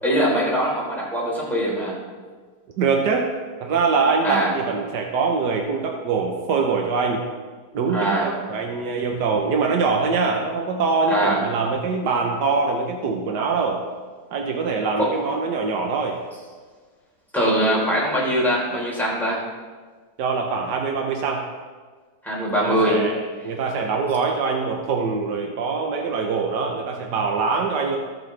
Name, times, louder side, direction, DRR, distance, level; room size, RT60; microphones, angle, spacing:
voice 1, 0.0-2.0 4.2-4.5 7.9-8.3 11.1-11.4 15.0-15.1 17.3-19.4 22.2-23.0, right 1 dB, ahead, -6 dB, 3.7 m, -22 dB
voice 2, 2.8-3.3 3.6-7.2 7.7-13.8 14.3-16.2 20.2-21.5 22.6-28.0, right 4 dB, 80° right, 2 dB, 1.5 m, -23 dB
19.5 x 6.7 x 3.3 m, 1.5 s
omnidirectional pair, 1.8 m